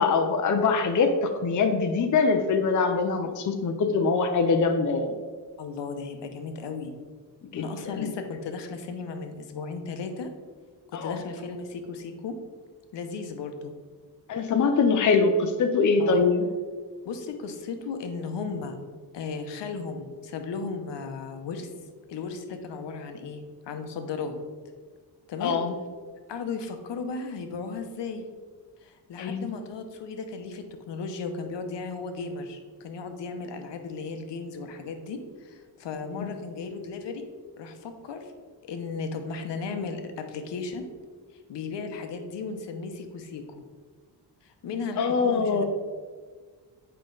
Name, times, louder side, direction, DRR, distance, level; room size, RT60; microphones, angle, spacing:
voice 1, 0.0-5.2 7.5-8.1 10.9-11.2 14.3-16.5 25.4-25.7 29.2-29.5 36.2-36.3 45.0-45.6, left 4 dB, 45° left, 5 dB, 0.6 m, -23 dB
voice 2, 5.6-6.9 7.6-10.3 10.9-12.4 12.9-13.7 16.0-16.2 17.0-18.8 19.1-21.7 22.1-24.3 25.3-25.6 26.3-28.3 28.8-37.3 37.6-38.3 38.7-40.9 41.5-43.4 44.4-45.6, left 4 dB, 80° left, 6 dB, 0.9 m, -35 dB
7.9 x 5.1 x 3.9 m, 1.5 s
wide cardioid pair, 160°, 42 cm